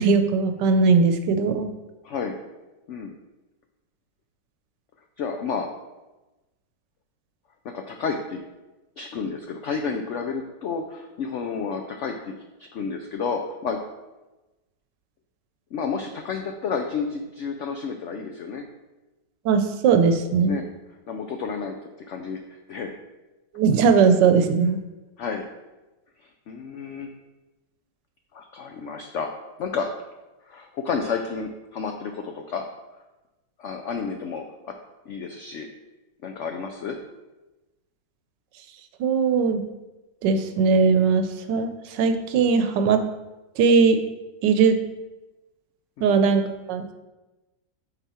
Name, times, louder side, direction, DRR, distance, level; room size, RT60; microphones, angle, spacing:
voice 1, 0.0-1.7 19.4-20.6 23.5-24.8 39.0-39.6 40.2-43.0 43.6-44.0 44.4-44.8 46.0-46.9, right 5 dB, 80° right, 8 dB, 1.3 m, -19 dB
voice 2, 2.0-2.4 2.9-3.1 5.2-5.7 7.6-8.4 9.0-12.3 12.6-13.8 15.7-18.7 20.4-20.6 21.1-21.8 22.1-23.0 25.2-25.5 26.2-27.1 28.3-29.3 29.6-29.9 30.4-32.7 33.6-34.4 35.1-35.7 36.2-37.0 46.0-46.2, left 5 dB, 90° left, 4 dB, 0.6 m, -31 dB
8.0 x 4.3 x 4.3 m, 1.1 s
omnidirectional pair, 1.9 m